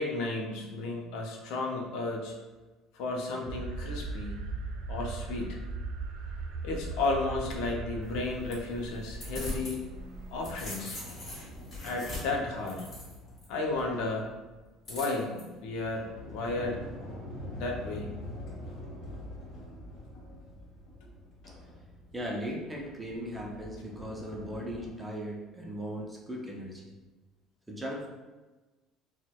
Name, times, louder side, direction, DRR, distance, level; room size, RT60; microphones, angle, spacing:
voice 1, 0.0-2.3 2.9-4.4 4.9-5.6 6.6-9.8 10.3-11.0 11.8-12.9 13.5-14.3 14.9-16.8 17.5-18.2, left 2 dB, 70° left, 0 dB, 0.5 m, -33 dB
sound 1, 3.4-10.7, right 3 dB, 70° right, 0.4 m, -39 dB
sound 2, 8.0-9.8 10.1-13.5 14.9-15.4, left 1 dB, 30° left, 1.4 m, -41 dB
Sliding door, 10.9-14.7 15.3-24.9, left 1 dB, 50° left, 1.2 m, -45 dB
voice 2, 22.1-26.9 27.7-28.1, equal, 10° right, -2 dB, 0.4 m, -38 dB
4.3 x 2.1 x 2.2 m, 1.2 s
cardioid pair, 170°, 0 cm